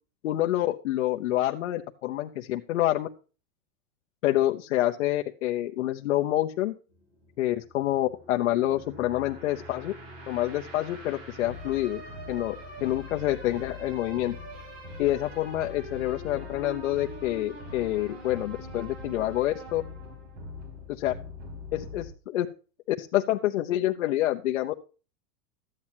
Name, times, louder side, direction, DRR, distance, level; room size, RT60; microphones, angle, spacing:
voice 1, 0.2-3.1 4.2-6.7 7.4-9.9 10.3-12.0 12.3-12.6 12.8-14.4 15.0-19.8 20.9-21.1 21.7-22.5 23.0-24.8, left 14 dB, 55° left, 3 dB, 0.9 m, -27 dB
sound 1, 6.9-22.1, left 2 dB, 40° right, 3.9 m, -42 dB
13.5 x 9.3 x 2.9 m, 0.34 s
supercardioid pair, 175°, 44 cm